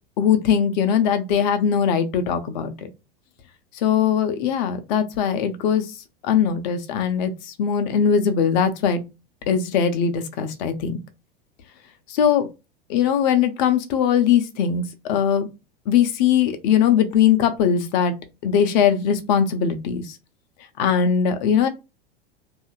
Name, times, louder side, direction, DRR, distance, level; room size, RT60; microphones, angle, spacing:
voice 1, 0.2-2.9 3.7-5.9 6.2-9.0 9.5-11.0 12.1-12.5 12.9-15.5 15.9-18.2 18.4-20.2 20.8-21.7, left 8 dB, 45° left, 0.7 m, -20 dB
2.8 x 2.5 x 2.2 m
figure-of-eight pair, 90°, 30 cm